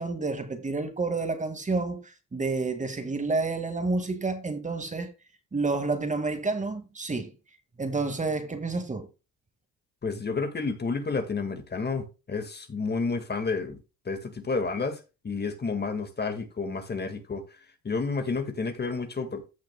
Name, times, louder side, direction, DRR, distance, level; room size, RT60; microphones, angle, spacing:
voice 1, 0.0-5.1 5.5-7.3 7.8-9.1, right 3 dB, 25° right, 1.9 m, -29 dB
voice 2, 10.0-13.8 14.1-17.4 17.8-19.4, left 4 dB, 35° left, 1.8 m, -30 dB
15.0 x 6.5 x 2.2 m
cardioid pair, 90°, 30 cm